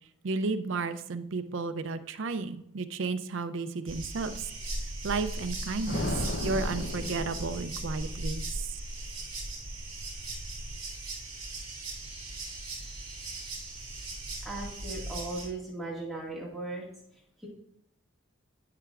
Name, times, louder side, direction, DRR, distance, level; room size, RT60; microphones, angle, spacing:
voice 1, 0.2-4.4 5.0-8.4, right 3 dB, 70° right, 10 dB, 0.5 m, -33 dB
sound 1, 3.9-15.5, right 2 dB, 25° right, 2.7 m, -38 dB
sound 2, 5.9-8.1, left 1 dB, 50° left, 0.7 m, -35 dB
voice 2, 14.4-16.9, right 2 dB, ahead, -6 dB, 1.8 m, -37 dB
11.5 x 5.8 x 2.4 m, 0.75 s
head